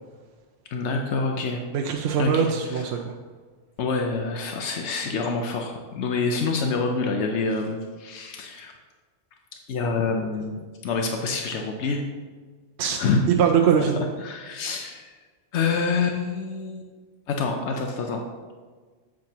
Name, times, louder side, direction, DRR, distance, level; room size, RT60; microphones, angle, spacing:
voice 1, 0.7-1.6 2.2-2.8 3.8-8.7 9.7-12.0 13.0-13.2 14.2-15.1 15.5-16.9 17.3-18.2, left 4 dB, 85° left, 3 dB, 1.0 m, -27 dB
voice 2, 1.7-3.1 12.8-13.0 13.3-14.0, right 7 dB, 75° right, 2 dB, 0.8 m, -22 dB
7.5 x 7.5 x 2.9 m, 1.4 s
omnidirectional pair, 1.1 m